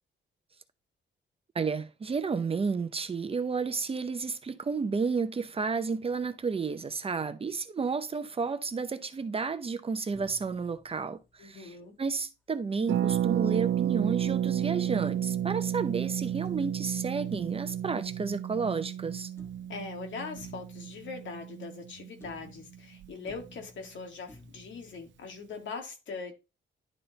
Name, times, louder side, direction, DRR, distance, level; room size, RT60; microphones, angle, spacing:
voice 1, 1.5-19.3, right 5 dB, 30° right, 0.7 m, -32 dB
sound 1, 10.1-11.7 13.1-15.7 16.5-19.0 19.4-21.9 22.2-25.7, left 1 dB, 10° left, 1.4 m, -55 dB
voice 2, 11.4-11.9 19.7-26.3, left 4 dB, 75° left, 2.0 m, -41 dB
Harp, 12.9-22.5 22.7-22.8 23.0-23.3, right 10 dB, 75° right, 0.6 m, -31 dB
11.0 x 3.9 x 4.0 m
wide cardioid pair, 140°, 20 cm